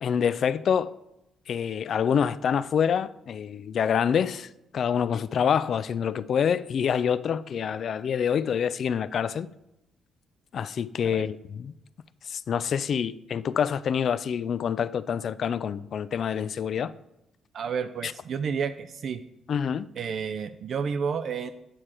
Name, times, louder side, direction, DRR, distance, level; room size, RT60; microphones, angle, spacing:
voice 1, 0.0-1.0 1.5-9.5 10.5-11.7 12.2-16.9 18.0-18.1 19.5-19.9, left 7 dB, 60° left, 0.3 m, -26 dB
voice 2, 17.5-19.2 20.0-21.5, right 6 dB, 60° right, 0.4 m, -30 dB
8.7 x 4.8 x 4.4 m
cardioid pair, 90°, 0 cm